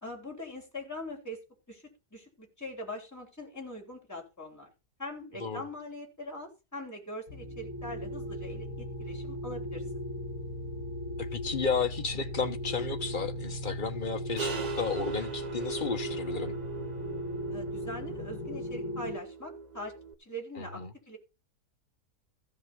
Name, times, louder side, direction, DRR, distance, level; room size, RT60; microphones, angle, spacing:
voice 1, 0.0-1.4 1.7-4.7 5.0-10.0 17.5-19.9 20.2-21.2, left 1 dB, 10° left, 3.6 m, -42 dB
sound 1, 7.3-19.2, equal, 65° left, 2.0 m, -38 dB
voice 2, 11.2-16.6 20.6-20.9, left 5 dB, 35° left, 1.3 m, -33 dB
sound 2, 14.4-20.1, right 4 dB, 35° right, 0.8 m, -40 dB
15.0 x 5.5 x 5.3 m
omnidirectional pair, 1.7 m